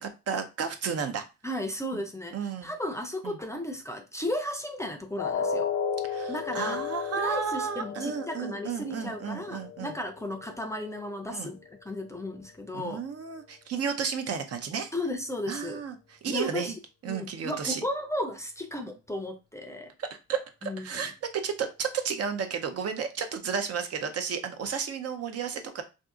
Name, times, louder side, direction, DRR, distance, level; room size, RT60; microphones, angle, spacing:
voice 1, 0.0-1.2 1.9-2.0 2.3-2.7 3.2-3.4 6.0-9.9 11.3-11.5 12.7-14.9 15.5-16.7 17.0-17.8 20.0-25.8, right 6 dB, 55° right, 7 dB, 0.6 m, -33 dB
voice 2, 1.4-5.7 6.3-6.8 7.1-11.6 11.8-13.0 14.9-15.8 16.3-16.7 17.1-19.9 20.6-21.0, left 1 dB, 10° left, 5 dB, 0.5 m, -34 dB
sound 1, 5.2-11.2 11.5-11.7 12.2-12.3, left 6 dB, 85° left, 0.6 m, -34 dB
2.6 x 2.4 x 3.6 m, 0.28 s
cardioid pair, 90°, 30 cm